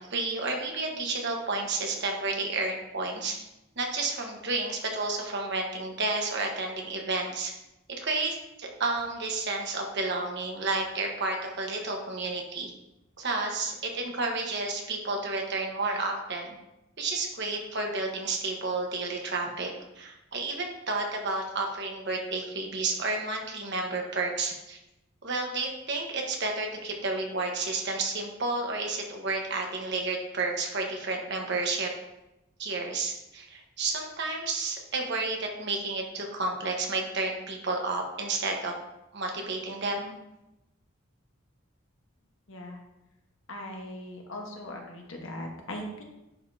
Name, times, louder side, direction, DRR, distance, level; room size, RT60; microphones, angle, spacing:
voice 1, 0.0-3.4 3.8-7.5 7.9-12.7 13.2-16.6 17.0-24.8 25.2-31.9 32.6-38.7 39.1-40.1, right 3 dB, 55° right, 2 dB, 1.2 m, -31 dB
voice 2, 42.5-42.8 43.5-46.0, left 1 dB, 70° left, 1 dB, 1.3 m, -39 dB
10.0 x 5.0 x 2.8 m, 0.92 s
head